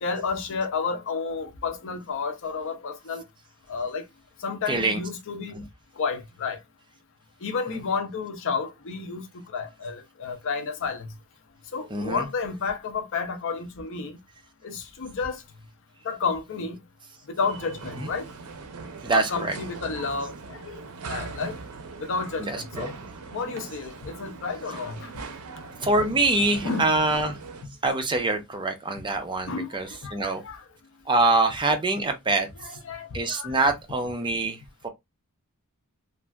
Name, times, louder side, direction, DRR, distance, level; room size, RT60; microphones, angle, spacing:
voice 1, 0.0-3.2 3.7-4.0 4.4-5.6 6.0-6.6 7.4-9.2 9.5-11.1 11.7-14.2 14.6-15.4 16.0-16.8 17.3-18.3 19.1-20.8 21.1-21.6 22.1-22.9 23.3-25.1 26.6-26.9 29.5-30.6 32.6-33.6, left 5 dB, 60° left, 0.6 m, -31 dB
voice 2, 4.7-5.0 5.5-5.6 11.9-12.3 18.0-18.1 19.0-19.5 22.4-22.9 25.8-27.4 27.8-30.4 31.1-32.5 33.1-34.6 34.8-34.9, right 2 dB, 20° right, 0.5 m, -25 dB
sound 1, 17.4-27.7, right 4 dB, 75° right, 0.5 m, -41 dB
3.1 x 2.5 x 2.2 m
head